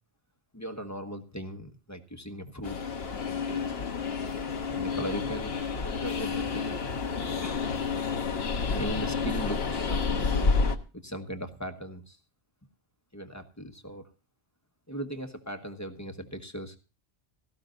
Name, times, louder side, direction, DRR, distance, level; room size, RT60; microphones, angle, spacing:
voice 1, 0.5-2.8 3.2-3.7 4.7-5.6 5.8-6.8 7.4-7.7 8.7-10.6 11.0-12.2 13.1-14.1 14.9-16.8, equal, 15° left, 6 dB, 1.3 m, -38 dB
Train, 2.6-10.8, left 4 dB, 75° left, 1.4 m, -30 dB
17.5 x 14.5 x 2.6 m, 0.33 s
omnidirectional pair, 1.1 m